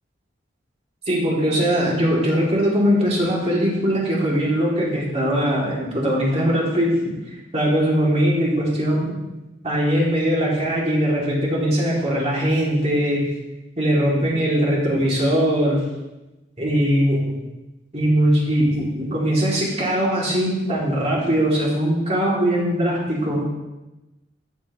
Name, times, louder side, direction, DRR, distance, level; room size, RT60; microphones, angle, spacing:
voice 1, 1.1-6.9 7.5-9.1 9.6-13.2 13.8-15.8 16.6-17.4 17.9-23.4, equal, 35° right, -5 dB, 2.8 m, -20 dB
12.5 x 7.7 x 3.1 m, 1.0 s
head